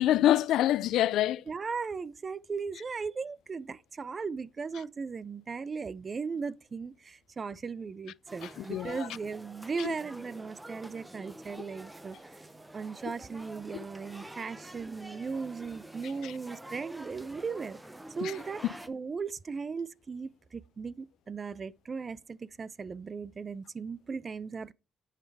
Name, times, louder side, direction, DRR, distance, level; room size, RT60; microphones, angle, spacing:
voice 1, 0.0-1.4 8.4-9.1 9.8-9.9 13.7-13.8 16.2-16.3 18.2-18.3 18.6-18.7, left 13 dB, 85° left, 0.4 m, -26 dB
voice 2, 1.5-12.4 12.7-17.8 18.2-18.6 18.9-24.7, right 5 dB, 35° right, 0.5 m, -37 dB
sound 1, 8.3-18.9, right 1 dB, 10° right, 0.8 m, -48 dB
10.5 x 5.8 x 4.7 m
cardioid pair, 90°, 0 cm